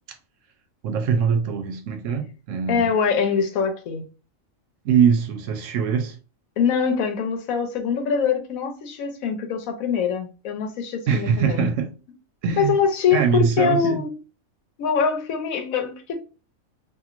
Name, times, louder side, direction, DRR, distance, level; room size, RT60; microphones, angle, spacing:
voice 1, 0.8-2.9 4.8-6.2 11.1-11.9 12.4-12.8 13.1-14.0, right 7 dB, 75° right, 0.9 m, -22 dB
voice 2, 2.7-4.1 6.6-11.7 12.6-14.1 14.8-16.2, left 6 dB, 90° left, 1.1 m, -23 dB
2.9 x 2.6 x 2.4 m
omnidirectional pair, 1.4 m